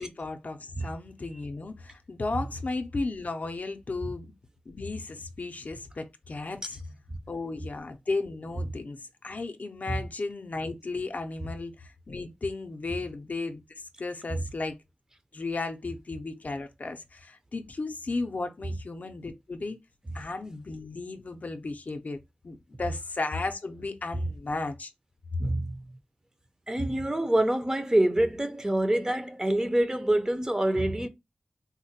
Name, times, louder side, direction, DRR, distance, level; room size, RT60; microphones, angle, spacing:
voice 1, 0.0-4.3 4.7-6.8 7.3-14.8 15.3-19.8 20.1-22.2 22.4-24.9, left 3 dB, 65° left, 0.4 m, -34 dB
voice 2, 25.4-25.8 26.7-31.1, right 1 dB, 20° right, 0.6 m, -26 dB
3.8 x 2.1 x 2.7 m
wide cardioid pair, 60°, 3 cm